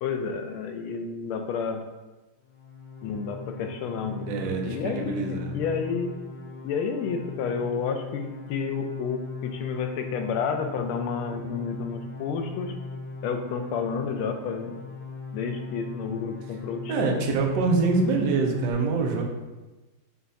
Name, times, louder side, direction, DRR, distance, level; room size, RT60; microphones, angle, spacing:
voice 1, 0.0-1.8 3.0-6.1 6.6-12.7 13.2-14.8 15.3-17.3, left 5 dB, 90° left, 5 dB, 1.4 m, -30 dB
sound 1, 2.4-18.7, left 3 dB, 70° left, 0.8 m, -39 dB
voice 2, 4.2-5.6 16.9-19.2, right 4 dB, 70° right, 1 dB, 1.2 m, -25 dB
5.4 x 2.4 x 3.9 m, 1.1 s
omnidirectional pair, 2.3 m